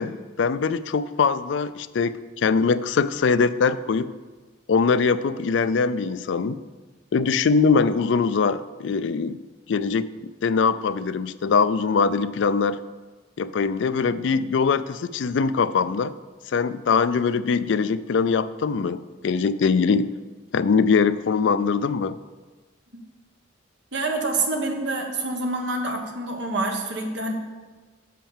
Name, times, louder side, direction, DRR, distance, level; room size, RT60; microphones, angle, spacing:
voice 1, 0.0-4.1 4.7-6.6 7.1-9.4 9.7-12.8 13.4-16.1 16.5-20.1 20.5-22.2, left 5 dB, 65° left, 14 dB, 0.4 m, -22 dB
voice 2, 23.9-27.3, right 2 dB, 60° right, 2 dB, 1.3 m, -27 dB
7.4 x 5.5 x 7.3 m, 1.3 s
head